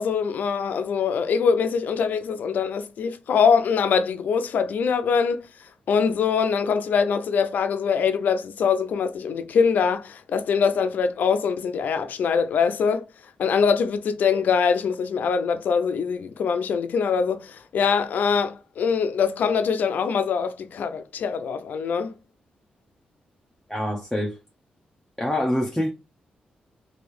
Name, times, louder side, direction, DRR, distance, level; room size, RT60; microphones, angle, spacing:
voice 1, 0.0-13.0 13.4-22.2, left 6 dB, 75° left, 0.5 m, -23 dB
voice 2, 23.7-24.4 25.2-25.9, left 1 dB, 5° left, 0.7 m, -25 dB
3.1 x 2.7 x 3.2 m
cardioid pair, 65°, 3 cm